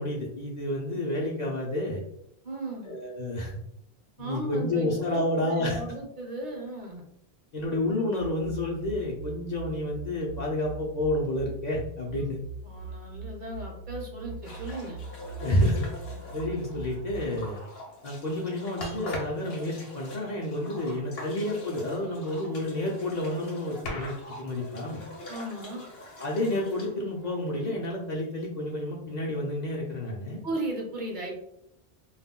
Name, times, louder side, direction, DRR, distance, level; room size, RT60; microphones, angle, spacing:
voice 1, 0.0-2.0 2.8-3.5 4.2-5.8 7.5-12.4 15.4-15.9 16.3-17.6 18.0-25.0 26.2-30.4, left 1 dB, 50° left, -2 dB, 0.6 m, -30 dB
voice 2, 2.4-2.9 4.2-7.0 12.1-12.3 12.6-15.0 25.3-25.9 30.4-31.4, right 2 dB, 55° right, 0 dB, 0.8 m, -36 dB
sound 1, 8.2-17.3, right 3 dB, 85° right, 0.8 m, -41 dB
sound 2, 14.4-27.9, left 1 dB, 70° left, 0.9 m, -42 dB
2.3 x 2.1 x 3.6 m, 0.75 s
omnidirectional pair, 1.0 m